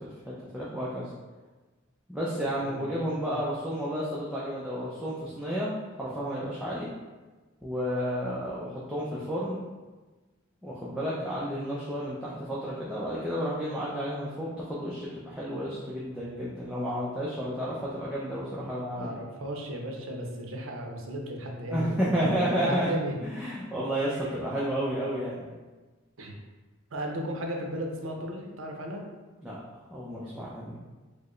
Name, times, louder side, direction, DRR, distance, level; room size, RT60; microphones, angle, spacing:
voice 1, 0.3-1.1 2.1-6.9 7.6-9.6 10.6-19.2 21.7-23.0 23.2-25.5 29.4-29.6 29.9-30.8, equal, 5° right, -8 dB, 0.4 m, -31 dB
voice 2, 2.6-3.4 16.8-16.9 18.8-23.1 24.1-24.2 26.2-26.3 26.9-29.0, equal, 70° right, 1 dB, 0.6 m, -35 dB
4.5 x 2.1 x 3.0 m, 1.2 s
head